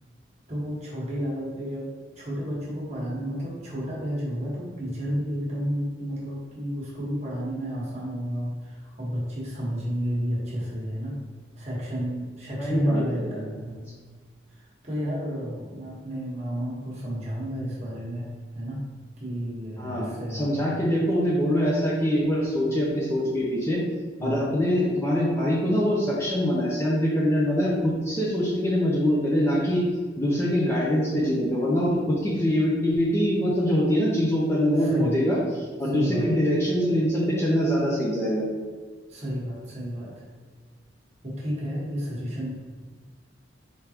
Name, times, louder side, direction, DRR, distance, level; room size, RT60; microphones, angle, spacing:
voice 1, 0.5-1.9 2.2-11.2 11.6-13.9 14.5-18.8 19.2-20.5 24.2-24.5 34.8-35.2 35.9-36.3 39.1-40.2 41.2-42.5, equal, 35° right, -5 dB, 1.3 m, -31 dB
voice 2, 12.6-13.4 19.8-23.8 24.2-29.8 30.2-35.4 35.8-38.4, equal, 15° left, -6 dB, 0.7 m, -24 dB
4.8 x 3.7 x 2.9 m, 1.5 s
head